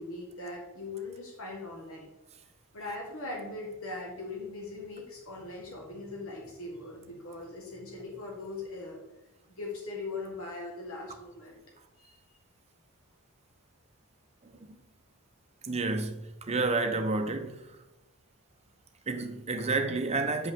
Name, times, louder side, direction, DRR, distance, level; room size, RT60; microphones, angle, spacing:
voice 1, 0.0-2.1 2.7-9.0 9.5-11.6 12.0-12.2, left 2 dB, 65° left, 1.6 m, -40 dB
voice 2, 15.6-17.5 19.1-20.5, right 3 dB, 30° right, 0.7 m, -30 dB
8.8 x 5.1 x 3.6 m
head